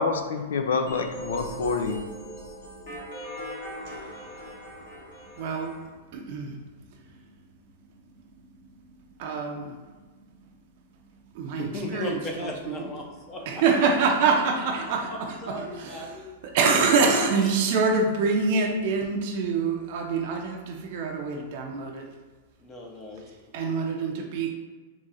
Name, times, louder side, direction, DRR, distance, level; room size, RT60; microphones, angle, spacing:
voice 1, 0.0-2.0, left 4 dB, 85° left, 6 dB, 0.5 m, -27 dB
sound 1, 0.9-5.9, right 1 dB, 50° left, 1.5 m, -40 dB
voice 2, 5.4-5.7 6.1-6.5 9.2-9.7 11.4-12.1 12.4-12.8 13.5-15.1 15.5-16.0 16.5-22.0 23.5-24.5, right 4 dB, 45° right, 1 dB, 0.5 m, -25 dB
voice 3, 11.6-13.9 14.8-16.3 17.0-17.7 22.6-23.2, left 2 dB, 20° left, 1 dB, 0.6 m, -37 dB
3.7 x 3.1 x 4.1 m, 1.4 s
supercardioid pair, 170°, 0 cm